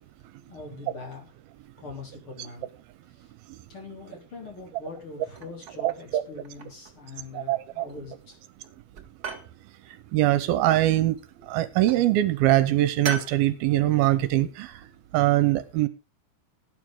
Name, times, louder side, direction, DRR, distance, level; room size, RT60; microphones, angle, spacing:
voice 1, 0.5-1.3 1.8-2.7 3.7-8.4, left 3 dB, 35° left, 3.8 m, -42 dB
sound 1, 5.3-6.1 6.4-7.1 7.9-8.4 8.6-9.5 11.0-11.5 11.9-12.1 13.0-13.4, right 5 dB, 50° right, 1.1 m, -37 dB
voice 2, 5.8-6.2 7.3-7.8 9.9-14.9 15.1-15.9, right 15 dB, 80° right, 2.6 m, -23 dB
17.0 x 9.3 x 3.7 m
omnidirectional pair, 4.4 m